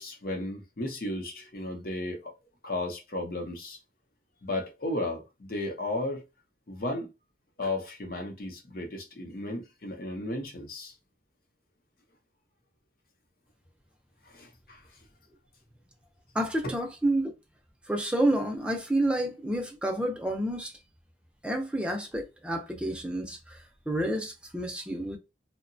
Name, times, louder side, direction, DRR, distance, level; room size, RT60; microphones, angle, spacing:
voice 1, 0.0-2.3 2.6-3.8 4.4-6.2 6.7-7.1 7.6-10.9 14.2-14.8, left 1 dB, 55° left, 0.7 m, -34 dB
voice 2, 16.3-17.3 17.9-20.7 21.4-23.6 23.9-25.2, right 1 dB, 5° right, 0.5 m, -29 dB
2.7 x 2.1 x 2.6 m
head